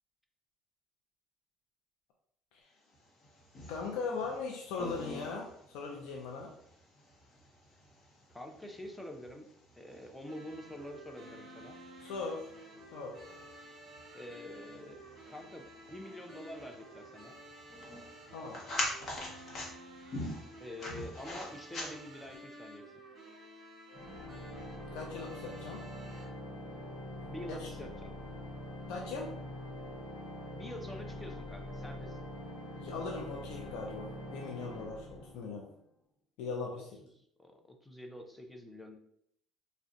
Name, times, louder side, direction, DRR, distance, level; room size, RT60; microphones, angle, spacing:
sound 1, 2.9-22.4, left 1 dB, 40° left, 0.9 m, -45 dB
voice 1, 3.7-6.5 12.0-12.5 12.9-13.2 18.3-18.6 24.9-25.8 27.5-27.7 28.9-29.3 32.8-35.7 36.4-36.9, left 4 dB, 80° left, 0 dB, 0.4 m, -39 dB
voice 2, 8.3-9.5 9.7-11.8 14.1-17.4 20.6-22.8 27.2-28.1 30.5-32.2 37.2-39.0, left 1 dB, 5° left, 3 dB, 0.4 m, -46 dB
sound 2, 10.2-26.2, right 1 dB, 45° right, 1.1 m, -52 dB
Organ, 23.9-35.7, left 1 dB, 60° left, 1.0 m, -44 dB
2.5 x 2.1 x 3.7 m, 0.72 s
cardioid pair, 125°, 0 cm